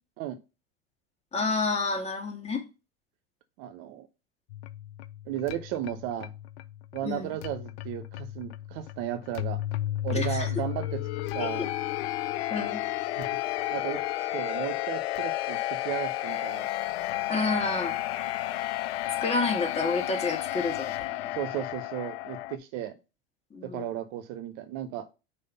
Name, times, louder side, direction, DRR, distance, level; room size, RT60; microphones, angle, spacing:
voice 1, 1.3-2.6 7.0-7.3 10.1-10.5 11.4-11.7 12.5-12.8 17.3-18.0 19.2-21.3 23.5-23.9, left 3 dB, 20° left, 2.0 m, -29 dB
voice 2, 3.6-4.1 5.3-6.3 6.9-9.6 10.0-11.0 11.3-11.6 13.2-13.3 13.7-16.7 21.3-22.9 23.6-25.1, right 11 dB, 60° right, 0.8 m, -35 dB
sound 1, 4.5-22.6, left 15 dB, 85° left, 0.5 m, -32 dB
5.6 x 3.3 x 5.5 m
hypercardioid pair, 90°, 30 cm